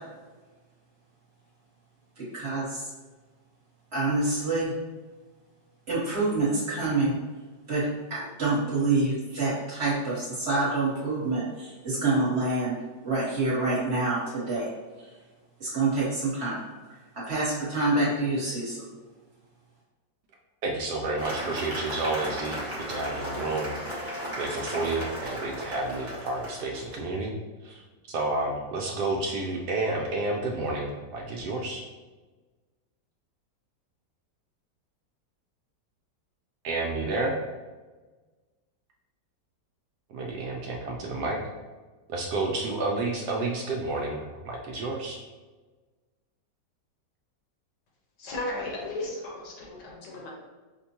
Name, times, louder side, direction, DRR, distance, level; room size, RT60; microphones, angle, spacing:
voice 1, 2.2-2.9 3.9-4.7 5.9-7.1 7.7-12.7 13.0-14.7 15.0-15.1 15.6-16.6 17.1-18.7, right 2 dB, 40° right, -7 dB, 1.2 m, -27 dB
voice 2, 20.6-22.6 22.9-27.3 27.6-27.8 28.1-31.8 36.6-37.4 40.1-41.4 42.1-45.2, right 2 dB, 75° right, 0 dB, 1.0 m, -30 dB
Cheering / Applause, 21.2-26.9, right 1 dB, 20° right, 0.4 m, -35 dB
voice 3, 48.2-50.3, left 2 dB, 75° left, -2 dB, 1.4 m, -35 dB
5.2 x 2.1 x 2.8 m, 1.3 s
omnidirectional pair, 1.9 m